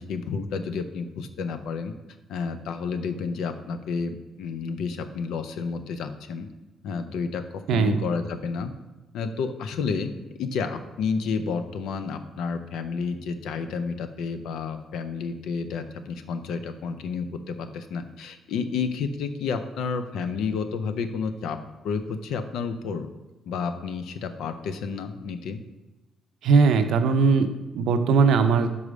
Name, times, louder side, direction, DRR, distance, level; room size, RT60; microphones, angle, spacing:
voice 1, 0.0-1.9 2.3-6.5 6.8-8.7 9.1-10.1 10.4-21.6 21.8-23.1 23.5-25.6, left 5 dB, 85° left, 9 dB, 0.5 m, -30 dB
voice 2, 26.4-28.7, right 5 dB, 80° right, 8 dB, 0.6 m, -20 dB
5.4 x 4.9 x 4.9 m, 1.1 s
cardioid pair, 90°, 0 cm